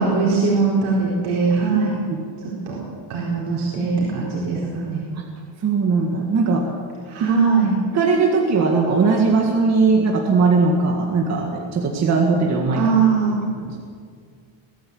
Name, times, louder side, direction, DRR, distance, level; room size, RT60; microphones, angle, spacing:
voice 1, 0.0-1.9 2.4-2.8 3.1-5.0 7.1-7.7 12.7-13.4, right 5 dB, 75° right, -4 dB, 4.5 m, -21 dB
voice 2, 5.6-6.7 7.2-7.3 7.9-12.8 13.6-13.8, right 4 dB, 30° right, 1 dB, 1.8 m, -19 dB
21.5 x 14.0 x 8.7 m, 2.1 s
cardioid pair, 170°, 49 cm